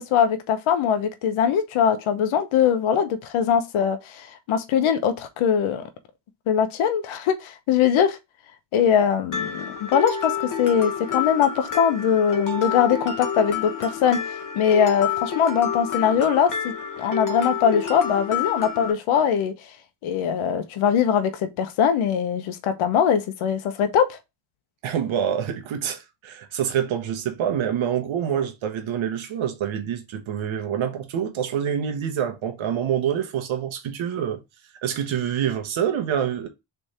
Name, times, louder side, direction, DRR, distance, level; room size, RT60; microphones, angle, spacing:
voice 1, 0.1-5.8 6.5-8.2 8.7-14.2 14.5-19.5 20.0-24.2, left 8 dB, 75° left, 0.9 m, -21 dB
Mallet percussion, 9.3-18.9, left 7 dB, 40° left, 1.0 m, -29 dB
voice 2, 24.8-34.4 34.8-36.5, right 9 dB, 70° right, 1.2 m, -26 dB
3.4 x 3.3 x 4.2 m
supercardioid pair, 65°, 49 cm